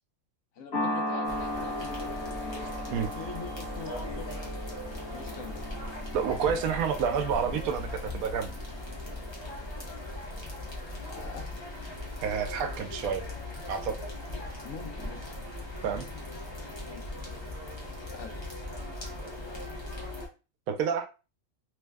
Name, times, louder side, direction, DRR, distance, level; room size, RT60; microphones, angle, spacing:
voice 1, 0.5-2.1 2.5-4.5 5.1-5.6 11.0-11.5 14.3-15.2 16.9-17.1 18.1-18.4, left 5 dB, 75° left, 4 dB, 1.1 m, -44 dB
sound 1, 0.7-9.2, left 1 dB, 50° left, 1.2 m, -37 dB
Amsterdam Airport Schiphol Plaza Ambience, 1.2-20.3, left 1 dB, 25° left, 0.7 m, -39 dB
voice 2, 6.1-8.5 12.2-13.2 13.7-14.0 15.8-16.1 20.7-21.0, right 7 dB, 90° right, 7 dB, 1.0 m, -29 dB
3.1 x 2.0 x 3.4 m, 0.32 s
omnidirectional pair, 1.4 m